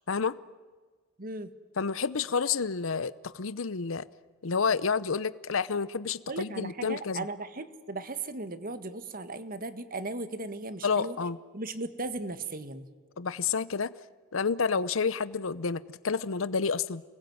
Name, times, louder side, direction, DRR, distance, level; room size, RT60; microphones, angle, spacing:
voice 1, 1.2-1.5 6.3-11.2 11.5-12.9, right 2 dB, 45° right, 11 dB, 1.8 m, -37 dB
voice 2, 1.8-4.0 4.4-7.3 10.8-11.4 13.2-13.9 14.3-17.0, left 5 dB, 70° left, 16 dB, 0.8 m, -29 dB
29.5 x 21.0 x 9.5 m, 1.4 s
head